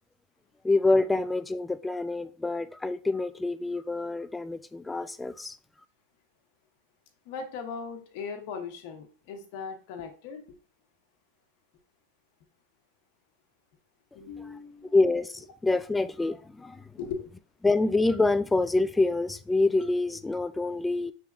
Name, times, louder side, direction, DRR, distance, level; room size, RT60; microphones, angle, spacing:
voice 1, 0.6-5.5 14.9-15.3 15.6-16.8 17.6-21.1, left 2 dB, 10° left, 0.3 m, -26 dB
voice 2, 7.2-10.6 14.1-15.0 17.0-17.2, left 5 dB, 60° left, 1.0 m, -38 dB
5.6 x 3.4 x 2.4 m
supercardioid pair, 120°, 0 cm